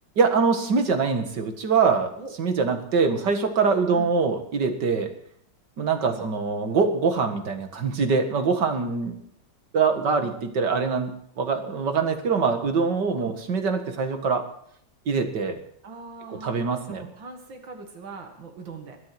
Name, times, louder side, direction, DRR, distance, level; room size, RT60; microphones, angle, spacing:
voice 1, 0.2-2.1 2.4-5.1 5.8-9.1 9.7-11.1 11.4-14.5 15.1-15.6 16.4-17.0, right 5 dB, 65° right, 6 dB, 2.4 m, -23 dB
voice 2, 9.9-10.3 13.2-13.4 15.8-16.6 16.9-19.0, right 3 dB, 90° right, 4 dB, 2.6 m, -41 dB
22.0 x 7.6 x 7.8 m, 0.69 s
omnidirectional pair, 2.0 m